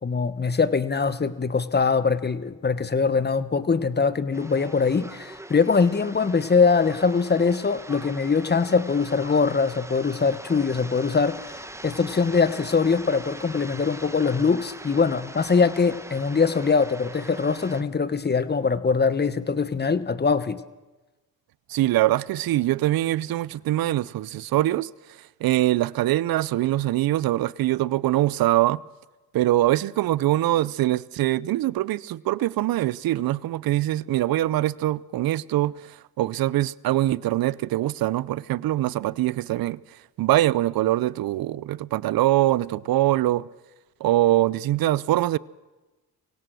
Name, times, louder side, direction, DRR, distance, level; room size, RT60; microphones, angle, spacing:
voice 1, 0.0-20.6, left 5 dB, 25° left, 1.1 m, -22 dB
sound 1, 4.3-17.8, right 1 dB, 10° right, 1.2 m, -42 dB
voice 2, 21.7-24.9 25.4-28.8 29.3-39.8 40.2-43.5 44.0-45.4, right 15 dB, 70° right, 0.6 m, -23 dB
24.0 x 17.0 x 6.3 m
cardioid pair, 70°, 36 cm